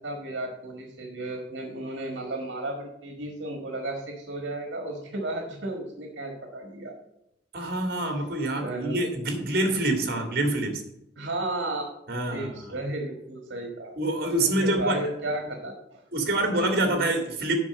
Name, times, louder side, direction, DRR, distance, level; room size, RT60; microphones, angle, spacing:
voice 1, 0.0-6.9 7.6-7.7 8.6-9.0 9.3-9.4 10.0-10.2 11.2-11.9 12.3-14.0 14.4-16.0, right 2 dB, 75° right, 3 dB, 1.5 m, -33 dB
voice 2, 7.5-10.8 12.1-12.8 14.0-15.0 16.1-17.5, right 1 dB, 55° right, 5 dB, 2.0 m, -26 dB
7.3 x 5.9 x 7.6 m, 0.83 s
head